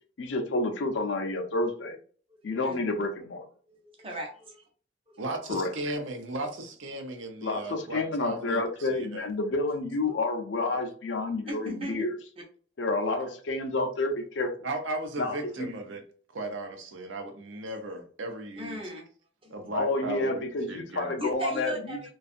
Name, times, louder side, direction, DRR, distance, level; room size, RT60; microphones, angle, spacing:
voice 1, 0.2-2.0 2.4-3.4 5.5-5.7 7.4-12.1 12.8-14.5 15.2-15.7 19.7-21.7, left 2 dB, 70° left, 0.5 m, -29 dB
voice 2, 2.3-2.8 3.7-4.7 5.1-5.2 11.5-12.0 12.4-12.5 18.6-19.0 19.4-19.6 21.2-22.1, right 1 dB, 30° right, 0.7 m, -37 dB
voice 3, 5.2-9.3 10.7-10.8 14.6-16.0 16.3-18.8 19.5-20.4 20.7-21.2, right 2 dB, 85° right, 0.6 m, -36 dB
2.5 x 2.3 x 2.4 m
head